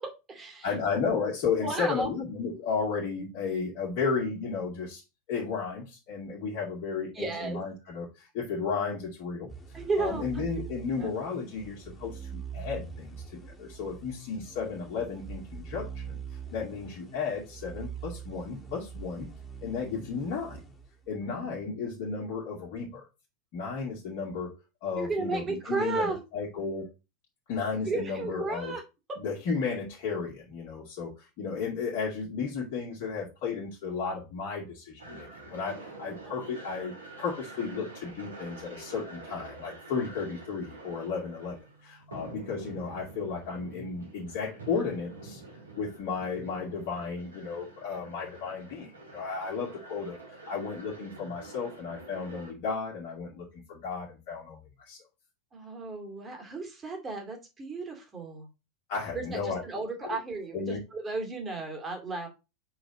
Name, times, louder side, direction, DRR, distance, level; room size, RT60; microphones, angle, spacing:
voice 1, 0.0-0.7 1.6-2.1 7.1-7.6 9.7-10.5 11.0-11.1 21.2-21.8 25.0-26.2 27.9-28.8 55.5-58.5 59.1-62.3, right 3 dB, 20° right, 3 dB, 2.3 m, -34 dB
voice 2, 0.6-5.0 5.3-9.5 10.0-16.2 16.5-19.3 19.6-20.6 21.1-23.1 23.5-24.5 24.8-26.9 27.5-28.8 29.2-41.6 41.8-45.4 45.8-54.6 54.9-55.0 58.9-59.6 60.0-60.2 60.5-60.8, left 5 dB, 50° left, -4 dB, 2.1 m, -34 dB
sound 1, 9.5-21.4, right 6 dB, 15° left, 2.0 m, -43 dB
sound 2, 35.0-52.5, right 2 dB, 80° right, 2.1 m, -47 dB
5.7 x 4.0 x 5.2 m, 0.27 s
figure-of-eight pair, 85°, 0 cm